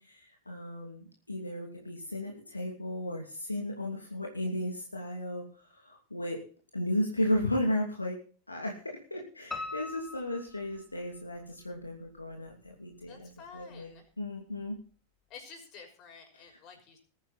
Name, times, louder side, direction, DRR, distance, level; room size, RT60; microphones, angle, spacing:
voice 1, 0.0-5.4 5.7-6.4 6.7-8.2 8.5-13.9 14.2-14.8, left 1 dB, 85° left, 1 dB, 2.8 m, -34 dB
Piano, 9.5-11.4 11.8-12.7 13.0-13.1 13.6-13.7 13.9-14.0, left 3 dB, 10° left, 1.9 m, -42 dB
voice 2, 13.0-14.0 15.3-17.0, left 5 dB, 40° left, 3 dB, 6.0 m, -50 dB
20.0 x 10.0 x 4.2 m, 0.42 s
figure-of-eight pair, 90°, 0 cm